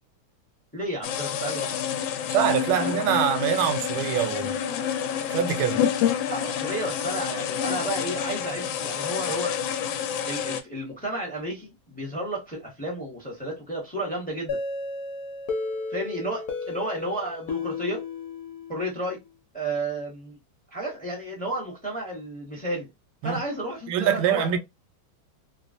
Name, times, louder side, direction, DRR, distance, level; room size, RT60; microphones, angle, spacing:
voice 1, 0.7-2.0 2.7-3.0 6.3-9.6 10.3-14.6 15.9-18.0 18.7-19.2 19.5-20.4 20.7-22.9 23.2-24.6, right 1 dB, 10° left, 0.5 m, -32 dB
sound 1, 1.0-10.6, left 9 dB, 80° left, 1.3 m, -28 dB
voice 2, 2.3-4.6 5.3-5.8 23.2-23.4 23.9-24.6, right 9 dB, 85° right, 1.4 m, -24 dB
sound 2, 14.5-19.2, left 3 dB, 60° left, 1.1 m, -33 dB
3.1 x 2.3 x 2.5 m
omnidirectional pair, 2.2 m